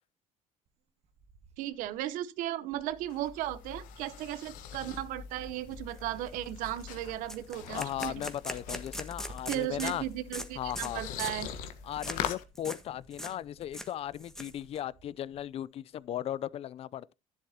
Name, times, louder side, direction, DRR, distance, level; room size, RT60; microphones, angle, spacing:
Cricket, 0.7-2.2 2.7-15.6 15.9-16.5, right 3 dB, 55° right, 1.5 m, -58 dB
voice 1, 1.6-8.1 9.5-11.5, right 13 dB, 85° right, 0.9 m, -36 dB
sound 1, 2.8-12.4, left 9 dB, 80° left, 1.4 m, -43 dB
sound 2, 5.9-6.0 6.3-6.5 6.8-6.9 7.3-10.0 10.3-10.5 10.7-10.9 11.2-11.4 12.0-12.2 12.5-12.8 13.1-13.3 13.6-14.8, left 1 dB, 5° left, 1.3 m, -40 dB
voice 2, 7.7-10.0 10.6-11.0 11.8-17.1, left 11 dB, 45° left, 0.5 m, -37 dB
11.0 x 11.0 x 2.8 m
cardioid pair, 130°, 14 cm